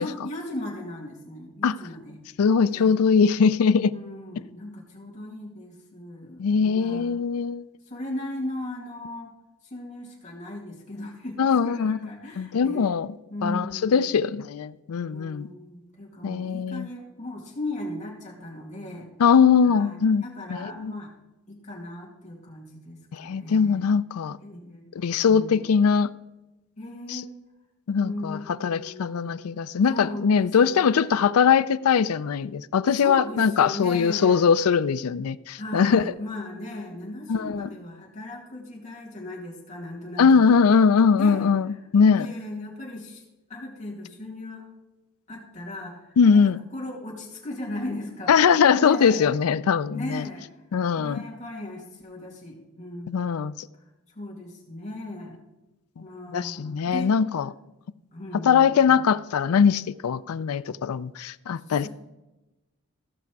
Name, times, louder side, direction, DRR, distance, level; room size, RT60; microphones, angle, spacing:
voice 1, 0.0-2.2 2.7-3.1 3.9-7.2 7.8-9.3 9.6-13.0 13.3-14.1 15.1-19.1 19.6-20.0 20.2-21.1 21.5-23.9 24.4-25.0 25.3-25.6 26.8-27.3 28.0-29.4 29.9-31.3 33.0-34.5 35.5-40.5 41.2-41.5 42.2-43.2 43.5-44.7 45.3-49.3 49.9-50.5 51.0-53.1 54.1-55.4 56.0-57.2 58.1-59.1 61.6-61.9, left 1 dB, 35° left, 2.5 m, -37 dB
voice 2, 2.4-3.9 6.4-7.6 11.4-12.0 12.4-13.1 13.4-15.5 16.2-16.9 19.2-20.2 20.5-21.0 23.1-24.4 25.0-26.1 27.1-27.2 27.9-36.0 37.3-37.7 40.2-42.3 46.2-46.6 48.3-50.3 50.7-51.2 53.1-53.7 56.3-57.5 58.5-61.9, left 6 dB, 85° left, 0.4 m, -21 dB
15.0 x 5.9 x 4.6 m
head